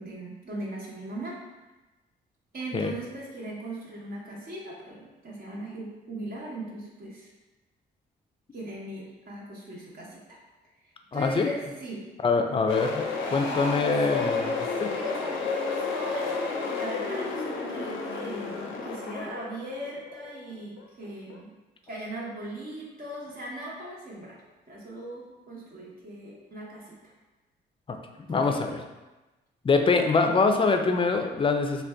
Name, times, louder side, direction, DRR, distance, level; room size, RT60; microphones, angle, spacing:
voice 1, 0.0-1.4 2.5-7.3 8.5-10.4 11.1-12.1 13.4-21.5 21.8-24.4 24.7-27.1 28.3-28.7, right 1 dB, 50° right, -5 dB, 0.9 m, -39 dB
voice 2, 11.1-11.5 12.2-14.5 14.8-14.9 28.3-28.8 29.6-31.8, left 4 dB, 25° left, 5 dB, 0.4 m, -24 dB
sound 1, 12.7-21.4, left 4 dB, 85° left, 0.5 m, -31 dB
2.6 x 2.2 x 3.4 m, 1.1 s
supercardioid pair, 55°, 20 cm